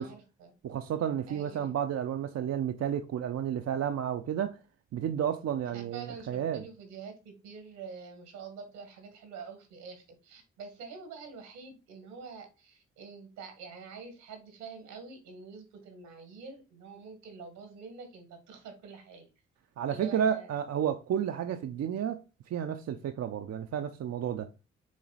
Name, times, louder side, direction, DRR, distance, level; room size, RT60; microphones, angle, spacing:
voice 1, 0.0-0.5 1.3-1.7 5.6-19.3 19.9-20.6, right 5 dB, 85° right, 1.7 m, -46 dB
voice 2, 0.6-4.6 4.9-6.6 19.8-22.2 22.5-24.5, right 9 dB, 60° right, 0.6 m, -31 dB
6.3 x 3.9 x 4.0 m
hypercardioid pair, 40°, 29 cm